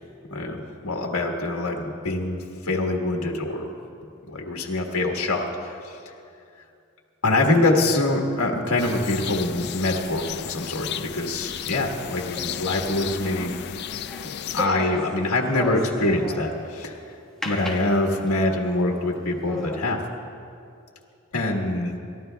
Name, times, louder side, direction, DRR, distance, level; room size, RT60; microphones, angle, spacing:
voice 1, 0.3-3.7 4.3-6.0 7.2-13.5 14.5-17.0 17.4-20.0 21.3-22.0, left 2 dB, 80° left, 0 dB, 1.4 m, -24 dB
sound 1, 8.8-14.7, left 9 dB, 50° left, 0.4 m, -34 dB
sound 2, 12.4-16.8 17.4-18.5 19.0-19.1 19.5-19.9, left 1 dB, 5° left, 1.4 m, -35 dB
29.0 x 13.0 x 2.3 m, 2.5 s
head